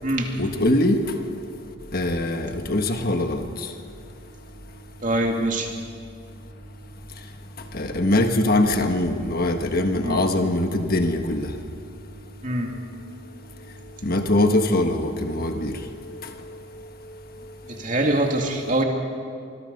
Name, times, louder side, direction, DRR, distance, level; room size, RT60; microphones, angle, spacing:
voice 1, 0.4-1.0 1.9-3.4 7.7-11.5 14.0-15.7, left 1 dB, 45° left, 5 dB, 1.5 m, -22 dB
voice 2, 5.0-5.7 10.0-10.2 12.4-12.7 17.7-18.8, right 1 dB, 40° right, 2 dB, 2.4 m, -23 dB
25.5 x 20.5 x 5.4 m, 2.4 s
head